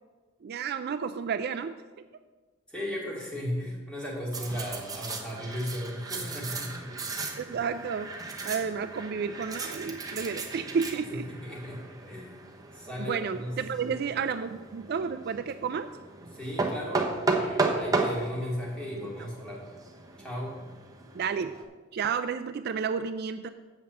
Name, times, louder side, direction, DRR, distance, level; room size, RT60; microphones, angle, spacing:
voice 1, 0.4-1.7 7.4-8.1 8.4-11.2 13.0-15.9 19.0-19.1 21.1-21.5 21.9-23.5, right 6 dB, 50° right, 10 dB, 0.3 m, -31 dB
voice 2, 2.7-6.7 11.1-12.4 12.7-13.6 13.8-14.0 16.3-19.6 20.2-20.6, equal, 5° left, -4 dB, 2.4 m, -36 dB
sound 1, 4.3-21.6, right 3 dB, 20° right, 0.9 m, -35 dB
7.3 x 5.9 x 7.4 m, 1.3 s
head